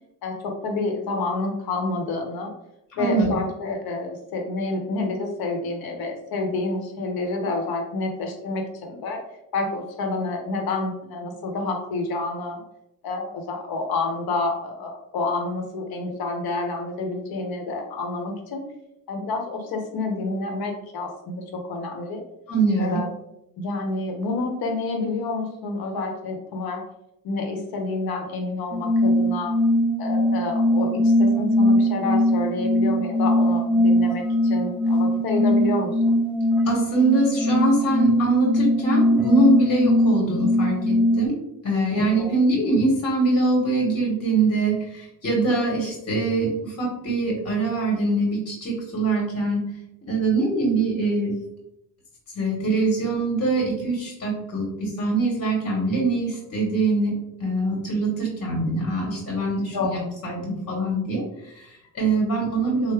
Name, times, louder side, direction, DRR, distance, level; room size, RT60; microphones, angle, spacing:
voice 1, 0.2-2.5 2.9-9.2 9.5-12.6 13.0-18.6 19.1-22.2 22.8-23.1 23.6-26.8 27.2-29.6 30.0-36.2 41.9-42.3 59.7-60.1, left 3 dB, 65° left, 3 dB, 0.9 m, -28 dB
voice 2, 3.0-3.3 22.5-23.0 36.6-49.6 50.1-51.3 52.3-62.9, right 2 dB, 40° left, -2 dB, 1.3 m, -23 dB
sound 1, 28.7-41.3, left 1 dB, 5° right, 0.4 m, -21 dB
3.3 x 2.1 x 3.3 m, 0.83 s
supercardioid pair, 65°, 39 cm